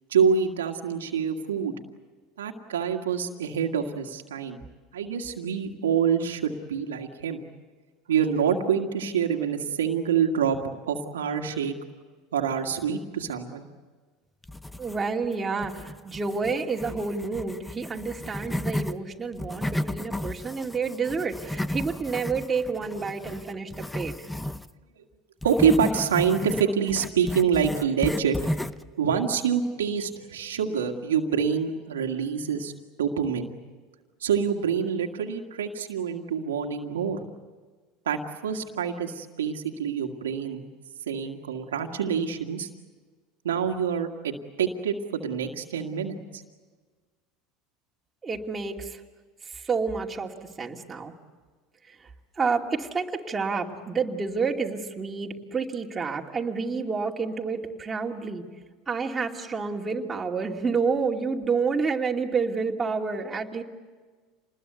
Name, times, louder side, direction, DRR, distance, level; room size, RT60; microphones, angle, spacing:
voice 1, 0.1-1.8 2.4-4.6 4.9-7.4 8.1-10.6 10.9-11.8 12.3-13.7 25.4-28.4 28.9-32.7 33.0-33.5 34.2-37.2 38.1-40.7 41.1-42.7 43.4-46.4, right 7 dB, 90° right, 2 dB, 1.9 m, -26 dB
sound 1, 14.4-15.3 15.6-19.0 19.3-24.7 25.4-28.9, left 1 dB, 5° left, 0.7 m, -33 dB
voice 2, 14.8-24.3 48.2-49.0 49.4-51.1 51.8-52.1 52.4-58.4 58.9-63.6, right 4 dB, 20° right, 0 dB, 2.7 m, -29 dB
27.0 x 20.5 x 8.2 m, 1.4 s
hypercardioid pair, 85°, 0 cm